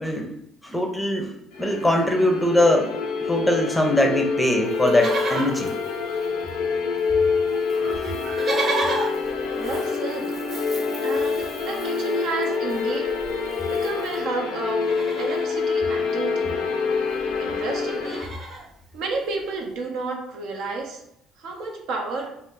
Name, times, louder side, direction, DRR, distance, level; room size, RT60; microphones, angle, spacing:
voice 1, 0.6-1.3 1.6-2.9 3.3-5.7, left 1 dB, 5° left, 3 dB, 0.6 m, -21 dB
sound 1, 1.5-18.2, left 5 dB, 85° left, 0.5 m, -26 dB
Livestock farm animals working animals, 4.7-6.7 7.0-7.1 7.3-14.2 14.7-15.6 16.8-16.9 17.1-17.4 17.7-18.7 19.3-19.4, right 2 dB, 50° right, 0.9 m, -33 dB
voice 2, 9.6-10.3 11.0-13.4 13.7-14.9 15.2-16.6 17.4-18.3 18.9-21.0 21.4-22.3, right 3 dB, 70° right, 2 dB, 0.6 m, -31 dB
2.6 x 2.1 x 3.7 m, 0.74 s
supercardioid pair, 90°, 0 cm